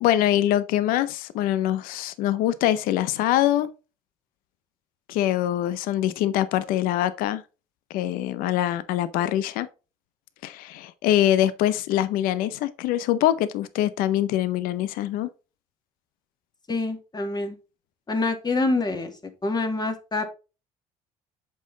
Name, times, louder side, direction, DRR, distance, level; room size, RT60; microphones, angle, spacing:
voice 1, 0.0-3.7 5.1-7.4 7.9-9.7 10.4-15.3, left 12 dB, 75° left, 0.7 m, -24 dB
voice 2, 16.7-17.6 18.1-19.1 19.4-20.3, left 3 dB, 30° left, 2.2 m, -26 dB
7.3 x 5.5 x 3.9 m
supercardioid pair, 75°, 15 cm